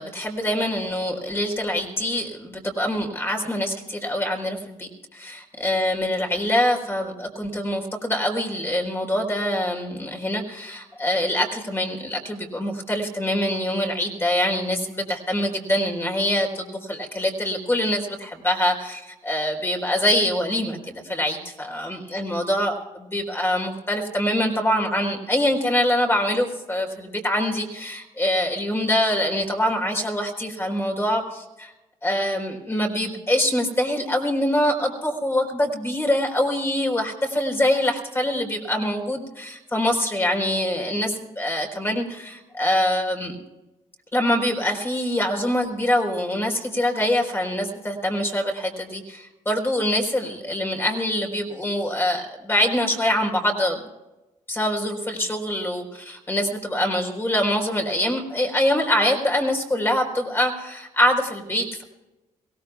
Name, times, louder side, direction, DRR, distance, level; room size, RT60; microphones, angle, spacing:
voice 1, 0.0-31.7 32.0-43.4 44.1-53.8 54.5-61.8, left 1 dB, 15° left, 2 dB, 4.3 m, -24 dB
23.5 x 17.5 x 2.4 m, 1.0 s
cardioid pair, 80°, 14 cm